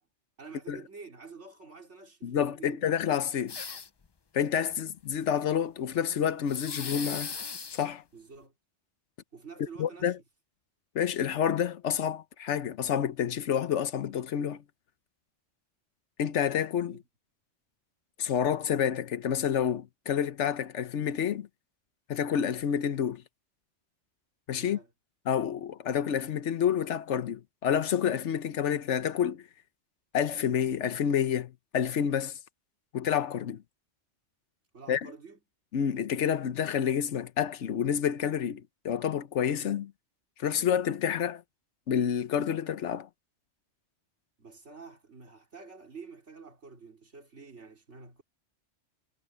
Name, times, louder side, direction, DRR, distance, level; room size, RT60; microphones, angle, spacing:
voice 1, 0.4-2.8 8.1-8.5 9.3-10.1 16.9-17.0 24.6-24.9 34.7-35.4 44.4-48.2, right 4 dB, 75° right, 3.8 m, -48 dB
voice 2, 2.2-3.6 4.3-7.3 7.7-8.0 9.8-10.2 10.9-14.6 16.2-17.0 18.2-21.5 22.1-23.2 24.5-24.8 25.3-29.4 30.1-32.4 32.9-33.6 34.9-35.0 35.7-39.9 40.4-41.4 41.9-43.1, left 8 dB, 85° left, 1.1 m, -29 dB
sound 1, 3.5-4.1 6.5-7.9, left 5 dB, 35° left, 0.4 m, -38 dB
omnidirectional pair, 1.2 m